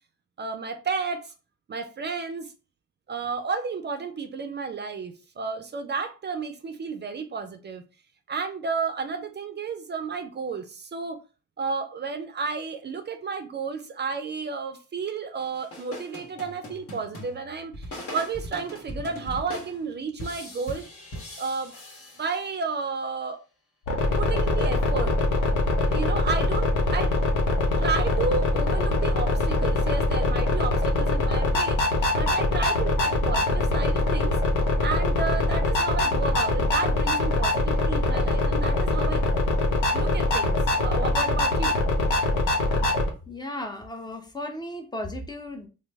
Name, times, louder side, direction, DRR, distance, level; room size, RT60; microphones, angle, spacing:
voice 1, 0.4-1.3 1.7-2.5 3.1-7.8 8.3-11.2 11.6-20.9 21.4-21.7 22.2-23.4 24.2-25.1 25.8-27.1 27.8-34.4 34.8-39.3 39.9-41.8, right 5 dB, 35° right, 0.4 m, -32 dB
sound 1, 15.4-22.8, left 1 dB, 50° left, 1.3 m, -40 dB
sound 2, 23.9-43.1, left 2 dB, 80° left, 0.8 m, -23 dB
voice 2, 43.3-45.7, left 1 dB, 15° left, 0.6 m, -35 dB
3.0 x 2.0 x 3.3 m
cardioid pair, 90°, 30 cm